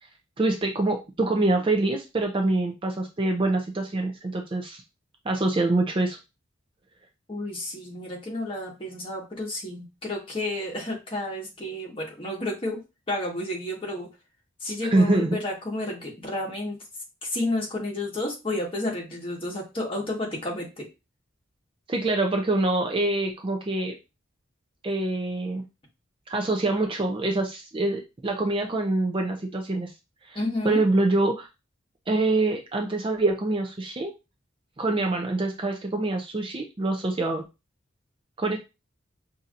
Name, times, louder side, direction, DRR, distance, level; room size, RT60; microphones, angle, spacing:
voice 1, 0.4-4.8 5.3-6.2 14.9-15.4 21.9-24.0 24.8-25.6 26.3-29.9 30.3-30.4 30.6-31.5 32.1-34.1 34.8-37.5 38.4-38.6, right 2 dB, 25° right, 2 dB, 0.4 m, -25 dB
voice 2, 7.3-12.8 13.1-14.1 14.6-16.8 17.2-20.9 30.3-30.8, left 1 dB, 25° left, -2 dB, 1.3 m, -31 dB
5.4 x 2.7 x 2.5 m, 0.26 s
head